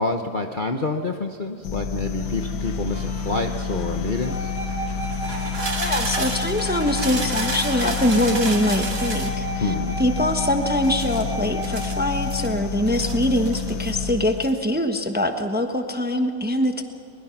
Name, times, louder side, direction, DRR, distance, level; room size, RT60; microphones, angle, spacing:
voice 1, 0.0-4.5 9.6-10.0, left 3 dB, 40° left, 4 dB, 0.9 m, -27 dB
sound 1, 1.6-14.6, left 5 dB, 90° left, 1.6 m, -29 dB
sound 2, 2.2-4.1 5.0-9.4 10.8-12.5 12.9-14.0 14.3-14.6, right 2 dB, 55° right, 2.9 m, -32 dB
sound 3, 4.2-12.5, right 2 dB, 10° left, 3.3 m, -34 dB
voice 2, 5.7-9.7 10.0-16.8, left 1 dB, 5° right, 6 dB, 1.0 m, -23 dB
22.5 x 22.0 x 5.9 m, 2.5 s
omnidirectional pair, 1.7 m